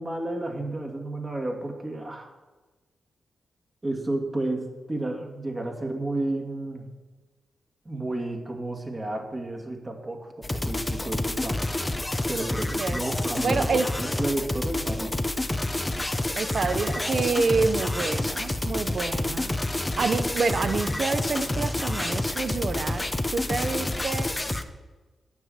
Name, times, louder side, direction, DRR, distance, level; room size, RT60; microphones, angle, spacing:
voice 1, 0.0-2.3 3.8-6.9 7.8-11.8 12.3-15.2 19.2-19.4 19.9-20.2, right 2 dB, 30° right, 2 dB, 2.4 m, -32 dB
sound 1, 10.4-24.6, left 1 dB, 20° left, 1.0 m, -28 dB
voice 2, 13.4-13.9 16.4-19.5 20.0-23.0 23.3-24.3, right 4 dB, 60° right, 10 dB, 1.0 m, -27 dB
9.5 x 7.3 x 7.8 m, 1.2 s
cardioid pair, 55°, 0 cm